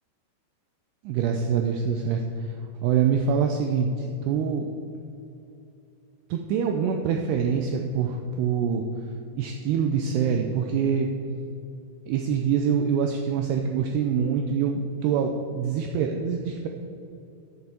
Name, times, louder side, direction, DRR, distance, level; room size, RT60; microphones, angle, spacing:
voice 1, 1.0-2.5 2.8-4.7 6.3-8.9 9.4-11.1 12.1-16.7, right 6 dB, 80° right, 4 dB, 2.4 m, -25 dB
10.5 x 7.5 x 6.8 m, 2.7 s
omnidirectional pair, 5.3 m